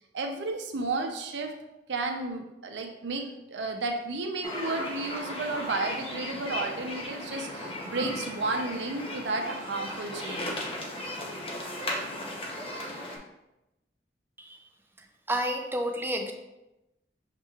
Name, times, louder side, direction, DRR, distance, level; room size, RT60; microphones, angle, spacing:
voice 1, 0.1-1.5 1.9-10.6, right 3 dB, 80° right, 3 dB, 0.6 m, -32 dB
sound 1, 4.4-13.2, left 1 dB, 35° left, 0.7 m, -36 dB
voice 2, 15.3-16.3, equal, 15° right, 4 dB, 0.4 m, -30 dB
6.5 x 3.0 x 2.3 m, 0.94 s
head